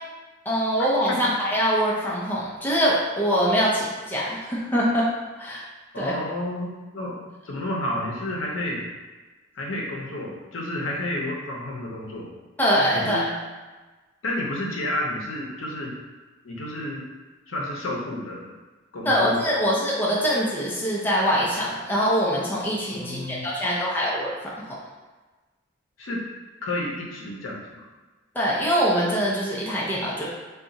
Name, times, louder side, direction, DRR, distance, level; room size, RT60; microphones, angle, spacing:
voice 1, 0.5-5.1 5.4-5.6 6.0-6.1 12.6-13.2 19.0-24.8 28.3-30.3, equal, 10° left, -6 dB, 0.5 m, -23 dB
voice 2, 5.9-8.8 9.5-12.3 12.9-13.3 14.2-15.9 16.4-17.0 17.5-18.5 18.9-19.7 23.0-23.5 26.0-26.2 26.6-27.9, left 1 dB, 80° left, -2 dB, 0.7 m, -31 dB
2.5 x 2.3 x 3.9 m, 1.2 s
head